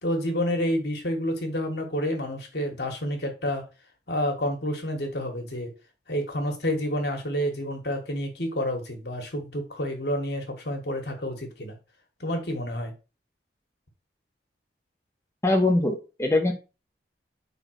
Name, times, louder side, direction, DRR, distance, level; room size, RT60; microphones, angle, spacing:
voice 1, 0.0-3.6 4.1-5.7 6.1-11.8 12.2-12.9, equal, 65° left, 2 dB, 1.9 m, -29 dB
voice 2, 15.4-16.5, left 2 dB, 15° left, 2 dB, 0.8 m, -22 dB
5.2 x 4.1 x 6.0 m, 0.31 s
head